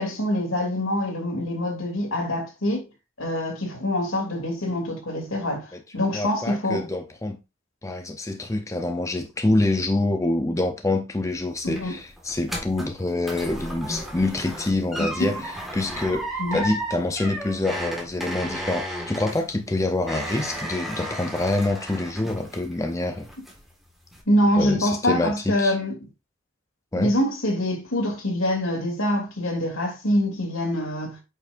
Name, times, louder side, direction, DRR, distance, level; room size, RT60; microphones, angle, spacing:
voice 1, 0.0-2.8 3.2-6.9 11.6-11.9 15.0-15.3 16.4-16.6 24.3-25.9 27.0-31.2, left 1 dB, 80° left, 2.8 m, -25 dB
voice 2, 6.1-7.4 7.8-23.3 24.6-25.8 26.9-27.1, left 2 dB, 15° left, 0.6 m, -26 dB
sound 1, 11.3-22.9 23.2-23.7 24.1-24.2, right 1 dB, ahead, 1.7 m, -34 dB
8.4 x 5.2 x 2.6 m
head